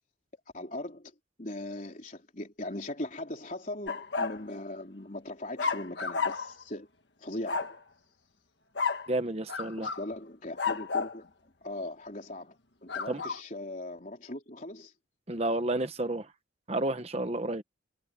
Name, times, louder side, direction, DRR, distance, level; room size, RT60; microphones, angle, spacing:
voice 1, 0.5-1.1 1.4-6.9 7.2-7.7 9.8-11.3 11.6-14.9, left 1 dB, 40° left, 4.0 m, -39 dB
sound 1, 3.9-4.4 5.6-6.6 7.5-7.8 8.8-9.1 9.5-10.1 10.6-11.2 12.9-13.4, left 5 dB, 60° left, 1.6 m, -31 dB
voice 2, 9.1-9.9 13.1-13.2 15.3-16.3 16.7-17.6, right 1 dB, 30° right, 1.0 m, -31 dB
head